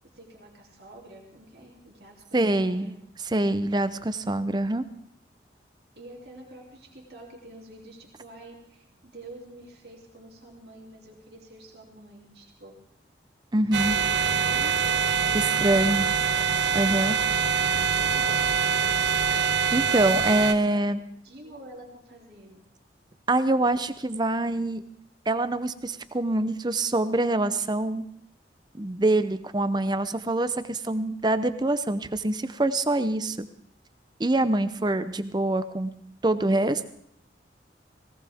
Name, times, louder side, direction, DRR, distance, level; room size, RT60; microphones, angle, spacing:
voice 1, 0.0-2.9 6.0-12.7 13.6-16.4 17.9-18.5 20.4-20.8 21.2-22.6, right 1 dB, 60° right, -2 dB, 2.8 m, -47 dB
voice 2, 2.3-2.9 3.3-4.8 13.5-14.0 15.3-16.1 16.7-17.2 19.7-21.0 23.3-24.8 25.3-28.0 28.8-33.5 34.2-35.9 36.2-36.9, right 2 dB, 25° right, 13 dB, 0.6 m, -25 dB
sound 1, 13.7-20.5, right 6 dB, 75° right, 0.7 m, -24 dB
18.0 x 18.0 x 3.5 m, 0.68 s
head